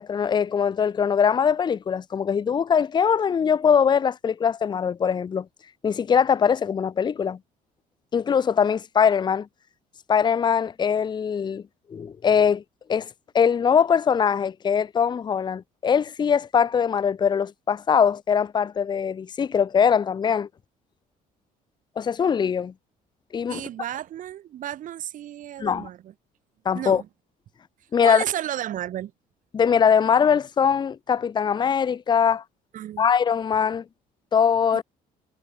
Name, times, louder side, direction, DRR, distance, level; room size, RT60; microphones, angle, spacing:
voice 1, 0.0-5.4 5.8-7.4 8.1-9.5 10.1-11.6 11.9-12.6 12.9-13.1 13.3-20.5 22.0-22.7 23.3-23.6 25.6-25.9 26.6-27.0 27.9-28.2 29.5-32.4 33.0-33.8 34.3-34.8, left 7 dB, 30° left, 0.8 m, -22 dB
voice 2, 23.5-26.1 26.7-27.1 28.0-29.1 32.7-33.1, right 12 dB, 60° right, 3.0 m, -32 dB
cardioid pair, 125°, 15 cm